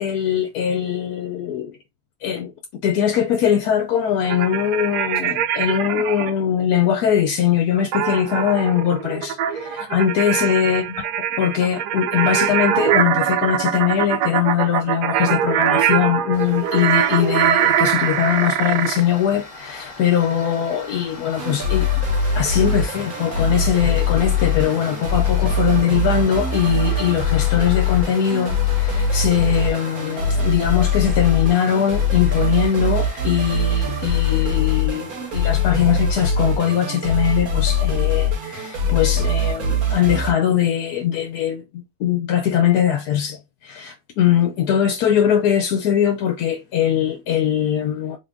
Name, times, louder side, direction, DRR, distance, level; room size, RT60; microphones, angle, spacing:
voice 1, 0.0-1.8 2.2-2.5 2.8-10.8 11.4-21.9 22.3-48.2, left 9 dB, 75° left, 1.0 m, -21 dB
sound 1, 4.2-6.3 7.9-19.0, right 10 dB, 85° right, 1.2 m, -22 dB
Tools, 16.3-35.6, left 2 dB, 25° left, 0.9 m, -39 dB
sound 2, 21.3-40.3, left 3 dB, 65° right, 1.6 m, -22 dB
3.5 x 3.5 x 2.5 m
omnidirectional pair, 1.7 m